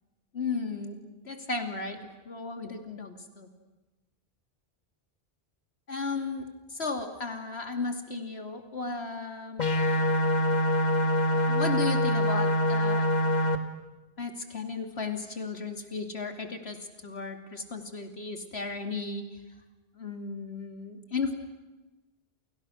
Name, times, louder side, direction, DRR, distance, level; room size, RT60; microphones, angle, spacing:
voice 1, 0.3-3.5 5.9-9.7 11.3-13.1 14.2-16.8 17.0-19.2 19.9-21.3, left 4 dB, 90° left, 5 dB, 3.0 m, -35 dB
sound 1, 9.6-13.6, left 1 dB, 45° left, 2.0 m, -25 dB
29.5 x 28.5 x 6.4 m, 1.1 s
omnidirectional pair, 1.1 m